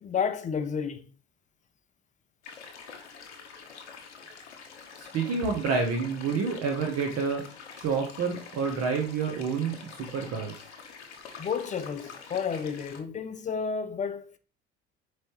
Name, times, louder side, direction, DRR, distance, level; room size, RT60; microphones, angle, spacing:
voice 1, 0.0-1.0 11.4-14.4, left 6 dB, 25° left, 0.4 m, -31 dB
sound 1, 2.4-13.0, left 5 dB, 85° left, 0.7 m, -46 dB
voice 2, 5.0-7.4 7.7-10.7, right 5 dB, 50° right, 0.8 m, -29 dB
4.3 x 3.1 x 2.9 m
hypercardioid pair, 65°, 34 cm